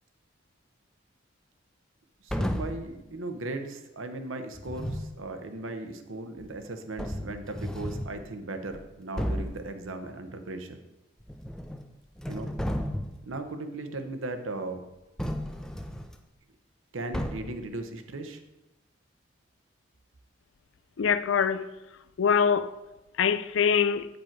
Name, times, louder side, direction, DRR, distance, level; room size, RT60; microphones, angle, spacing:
voice 1, 2.2-10.8 12.3-12.5 13.2-14.8 16.9-18.4, right 2 dB, 85° right, 0.9 m, -37 dB
sound 1, 2.3-2.9 4.6-5.2 6.4-6.5 7.0-8.2 8.7-8.8 9.2-9.6 11.2-11.9 12.2-13.3 15.2-16.2 17.1-17.7, equal, 5° left, 0.4 m, -33 dB
voice 2, 21.0-21.6 22.2-22.7 23.2-24.1, left 7 dB, 75° left, 0.4 m, -23 dB
8.7 x 5.2 x 4.5 m
head